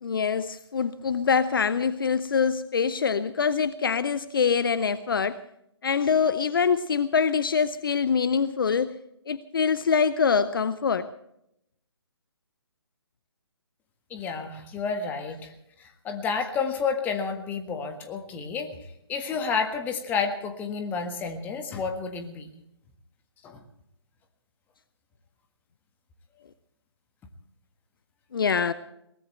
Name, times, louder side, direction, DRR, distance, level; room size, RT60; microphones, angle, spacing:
voice 1, 0.0-5.4 5.8-9.0 9.3-11.1 28.3-28.7, left 6 dB, 50° left, 0.8 m, -24 dB
voice 2, 14.1-22.5 23.4-23.6, left 5 dB, 10° left, 1.6 m, -31 dB
22.0 x 19.5 x 3.2 m
figure-of-eight pair, 140°, 15 cm